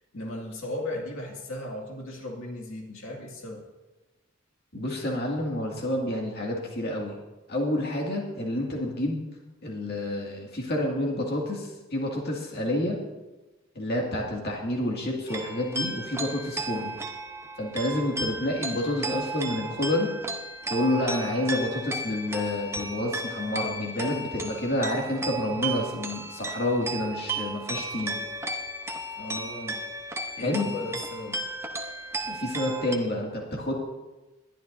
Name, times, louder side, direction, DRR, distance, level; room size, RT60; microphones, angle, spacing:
voice 1, 0.1-3.7 29.2-29.8 30.4-31.4, left 1 dB, 80° left, 0 dB, 2.1 m, -36 dB
voice 2, 4.7-7.1 7.5-9.2 9.6-13.0 13.8-16.9 17.6-20.1 20.7-28.2 30.4-30.7 32.2-33.7, left 1 dB, 50° left, -1 dB, 2.2 m, -29 dB
sound 1, 15.3-33.0, right 2 dB, 15° right, 0.8 m, -34 dB
21.0 x 12.0 x 2.6 m, 1.1 s
head